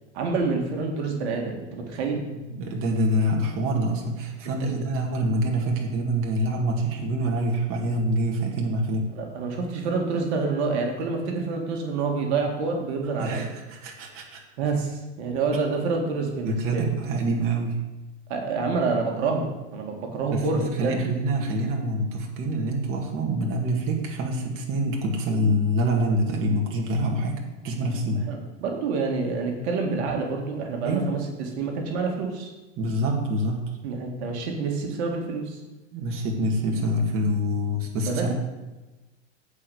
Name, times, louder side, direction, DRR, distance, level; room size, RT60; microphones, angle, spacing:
voice 1, 0.1-2.2 4.6-4.7 9.1-13.5 14.6-16.9 18.3-21.0 28.3-32.5 33.8-35.6 38.1-38.3, right 4 dB, 60° right, 2 dB, 2.0 m, -27 dB
voice 2, 2.1-9.1 13.2-14.4 16.4-17.8 20.3-27.4 27.6-28.2 30.8-31.1 32.8-33.7 35.9-38.3, right 1 dB, 35° right, 0 dB, 1.9 m, -26 dB
8.4 x 5.0 x 7.0 m, 1.1 s
hypercardioid pair, 110°, 36 cm